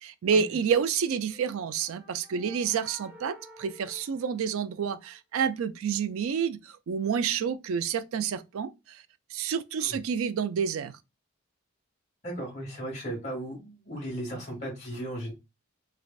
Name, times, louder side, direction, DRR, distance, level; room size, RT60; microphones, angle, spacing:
voice 1, 0.0-9.0 9.3-10.9, right 7 dB, 70° right, 0.4 m, -29 dB
sound 1, 1.2-5.1, right 1 dB, 5° right, 0.7 m, -52 dB
voice 2, 12.2-15.3, right 1 dB, 30° left, 1.7 m, -36 dB
3.2 x 2.5 x 2.3 m
head